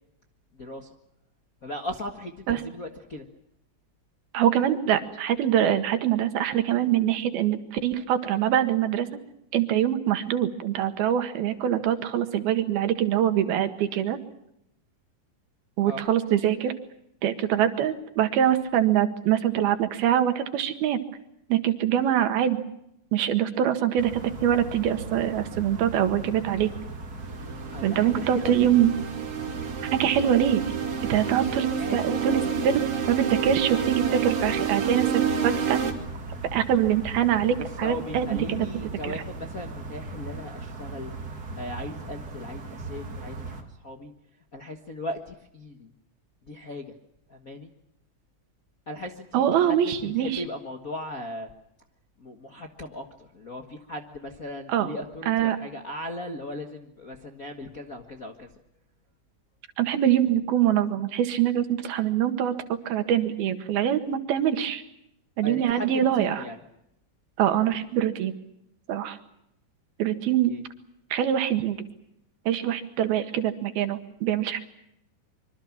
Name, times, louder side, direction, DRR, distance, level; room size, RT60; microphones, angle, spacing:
voice 1, 0.5-0.9 1.6-3.3 15.9-16.0 27.6-28.8 31.3-32.6 37.8-41.1 41.6-44.1 44.5-45.9 46.4-46.9 47.3-47.7 48.9-51.5 52.2-58.5 65.4-66.6 70.5-70.6, left 2 dB, 45° left, 4 dB, 1.1 m, -37 dB
voice 2, 4.3-9.1 9.5-14.2 15.8-16.7 17.2-21.0 21.5-22.6 23.1-26.7 27.8-28.9 29.8-30.6 31.1-31.7 31.9-32.8 33.1-35.8 36.5-38.7 39.0-39.2 49.3-50.4 54.7-54.9 55.3-55.6 59.8-62.5 62.9-64.8 65.4-66.4 67.4-68.3 68.9-69.2 70.0-70.5 71.1-71.9 72.5-74.6, right 10 dB, 90° right, 9 dB, 3.6 m, -24 dB
sound 1, 24.0-43.6, right 3 dB, 30° right, 2.5 m, -38 dB
sound 2, 27.2-35.9, right 7 dB, 50° right, 3.9 m, -29 dB
25.5 x 24.5 x 7.3 m, 0.78 s
omnidirectional pair, 4.2 m